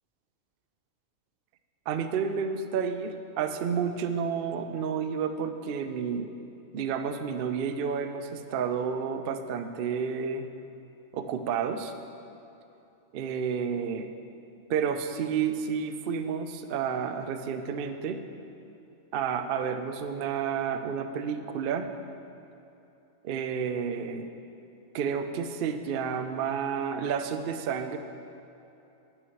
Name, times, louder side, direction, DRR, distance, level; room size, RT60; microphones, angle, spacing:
voice 1, 1.9-6.3 6.7-10.5 11.1-11.9 13.1-14.1 14.7-18.2 19.1-21.9 23.2-24.3 24.9-28.0, right 7 dB, 60° right, 8 dB, 0.6 m, -30 dB
9.7 x 8.8 x 4.7 m, 2.8 s
omnidirectional pair, 1.4 m